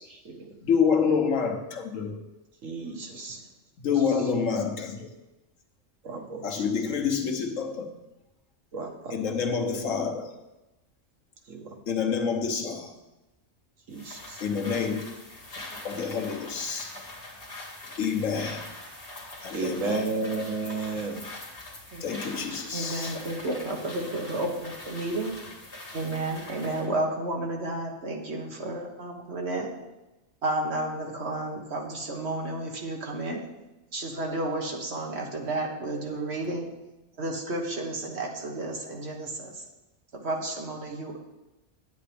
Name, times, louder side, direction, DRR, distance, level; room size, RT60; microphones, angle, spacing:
voice 1, 0.0-0.5 2.6-3.4 3.9-4.3 6.0-6.7 8.7-9.4 11.5-11.8 13.9-14.4 19.5-21.2 22.3-22.6, right 3 dB, 85° right, 2 dB, 1.7 m, -33 dB
voice 2, 0.6-2.2 3.8-5.1 6.4-7.9 9.1-10.3 11.9-13.0 14.4-15.0 15.8-17.0 18.0-18.7 19.4-20.0 22.0-23.1, left 6 dB, 85° left, 3 dB, 1.4 m, -27 dB
sound 1, 13.9-26.9, left 2 dB, 50° left, 2.2 m, -43 dB
voice 3, 22.7-25.3 25.9-29.7 30.4-33.4 33.9-36.7 37.2-39.6 40.2-41.2, right 2 dB, 60° right, 0 dB, 1.7 m, -32 dB
10.0 x 8.8 x 3.5 m, 1.0 s
omnidirectional pair, 1.3 m